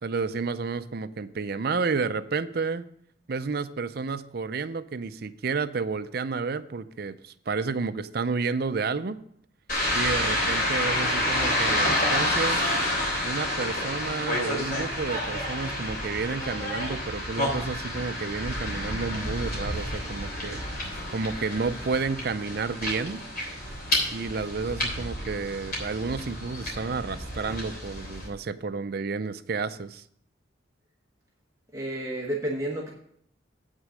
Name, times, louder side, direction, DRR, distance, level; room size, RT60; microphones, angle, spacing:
voice 1, 0.0-2.9 3.3-9.2 9.9-12.6 13.2-20.6 21.1-23.2 24.1-30.0, right 4 dB, 50° right, 12 dB, 0.5 m, -31 dB
sound 1, 9.7-28.3, left 1 dB, 50° left, 3.4 m, -29 dB
voice 2, 31.7-32.9, right 1 dB, 15° right, -2 dB, 1.1 m, -30 dB
8.3 x 6.3 x 6.3 m, 0.69 s
head